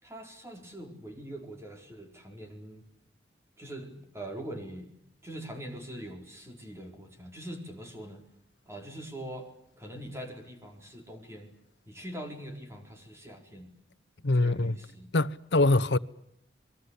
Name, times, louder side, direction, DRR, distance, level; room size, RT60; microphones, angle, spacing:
voice 1, 0.0-2.8 3.6-4.9 5.2-8.2 8.7-9.5 9.8-11.5 11.9-13.7 14.3-15.1, right 1 dB, 15° right, 4.5 m, -43 dB
voice 2, 14.2-14.8 15.1-16.0, left 2 dB, 85° left, 1.0 m, -23 dB
27.0 x 22.5 x 8.3 m
head